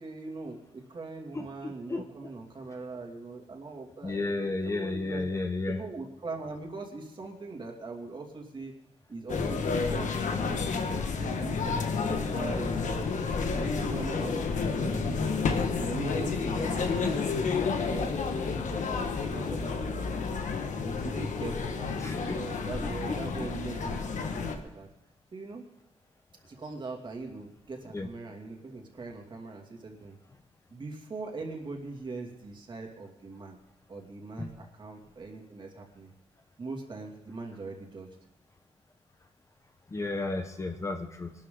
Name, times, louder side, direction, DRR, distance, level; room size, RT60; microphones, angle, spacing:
voice 1, 0.0-5.3 5.7-8.7 9.1-13.2 13.5-15.2 15.8-20.4 20.8-24.9 25.3-25.6 26.4-30.2 30.7-33.6 33.9-36.1 36.6-38.1, right 3 dB, 40° right, 1 dB, 2.5 m, -41 dB
voice 2, 4.0-5.8 22.0-22.4 23.1-23.5 27.9-28.1 34.4-34.5 39.9-41.3, left 2 dB, 25° left, 6 dB, 0.9 m, -32 dB
sound 1, 9.3-24.6, left 4 dB, 85° left, 1.5 m, -30 dB
22.5 x 12.5 x 3.8 m, 0.92 s
wide cardioid pair, 175°, 12 cm